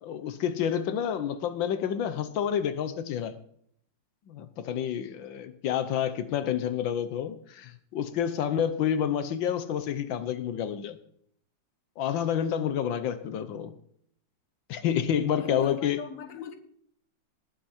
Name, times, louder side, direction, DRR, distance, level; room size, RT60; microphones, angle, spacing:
voice 1, 0.0-3.3 4.3-11.0 12.0-13.7 14.7-16.0, left 9 dB, 90° left, 1.7 m, -29 dB
voice 2, 15.4-16.5, left 6 dB, 45° left, 1.6 m, -41 dB
19.0 x 8.4 x 4.3 m
omnidirectional pair, 2.0 m